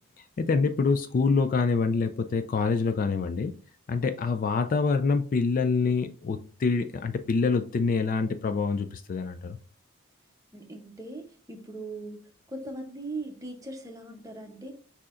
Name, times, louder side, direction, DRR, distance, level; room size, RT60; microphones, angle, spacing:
voice 1, 0.4-3.5 3.9-9.6, left 4 dB, 40° left, 8 dB, 0.3 m, -26 dB
voice 2, 10.5-12.2 12.5-14.7, right 2 dB, 15° right, 3 dB, 0.8 m, -39 dB
6.2 x 2.8 x 2.5 m, 0.42 s
head